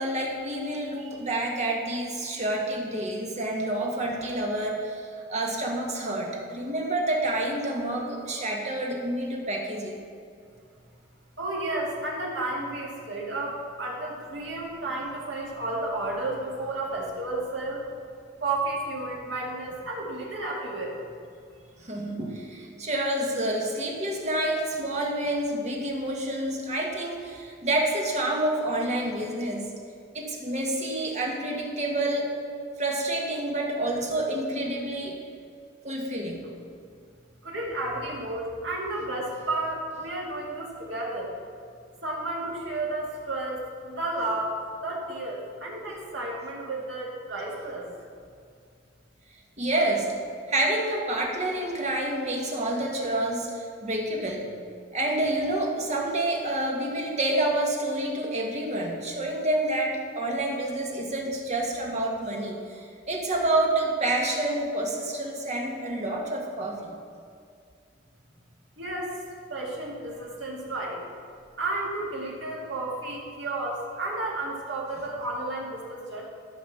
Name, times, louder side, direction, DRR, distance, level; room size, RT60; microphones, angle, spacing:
voice 1, 0.0-10.0 21.8-29.7 30.1-32.3 32.8-35.2 35.8-36.4 49.6-50.1 50.5-54.5 54.9-67.0, right 1 dB, 35° right, -1 dB, 1.6 m, -28 dB
voice 2, 11.4-17.8 18.4-21.0 37.4-41.3 42.0-47.9 68.8-69.2 69.5-71.0 71.6-76.2, right 2 dB, 65° right, -3 dB, 2.3 m, -32 dB
13.5 x 5.5 x 5.7 m, 2.3 s
head